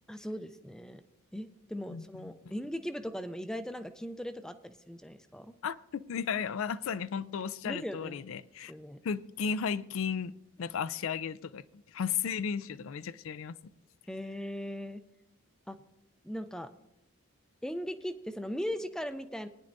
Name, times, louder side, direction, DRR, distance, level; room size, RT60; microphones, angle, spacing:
voice 1, 0.1-1.0 1.3-5.5 7.6-8.2 8.7-9.0 14.1-15.0 15.7-15.8 16.2-16.7 17.6-19.5, equal, 5° left, 0.4 m, -38 dB
voice 2, 1.9-2.3 5.6-8.7 9.0-10.3 10.6-13.6, left 6 dB, 70° left, 0.4 m, -34 dB
20.0 x 10.0 x 2.6 m
head